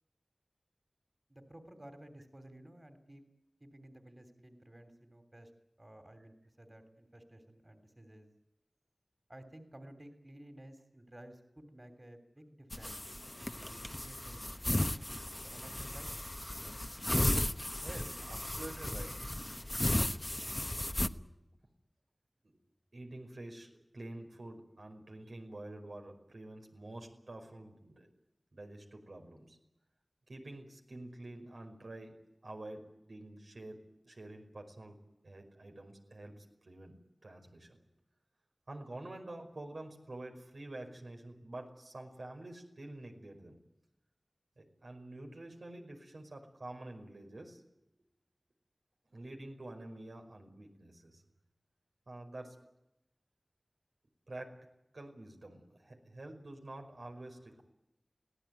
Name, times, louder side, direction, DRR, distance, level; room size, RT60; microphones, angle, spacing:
voice 1, 1.3-3.2 3.6-5.5 5.8-8.3 9.3-14.6 15.4-16.1, right 1 dB, 35° right, 7 dB, 3.2 m, -54 dB
sound 1, 12.7-21.1, left 1 dB, 30° left, 1.1 m, -35 dB
voice 2, 17.8-19.4 21.2-21.3 22.9-28.1 28.5-29.6 30.3-33.8 34.1-35.0 35.2-37.0 37.2-37.8 38.7-43.6 44.6-47.6 49.1-51.2 52.1-52.6 54.3-54.5 54.9-57.6, right 2 dB, 90° right, 2 dB, 5.2 m, -48 dB
25.0 x 17.5 x 9.3 m, 0.87 s
wide cardioid pair, 50°, 0 cm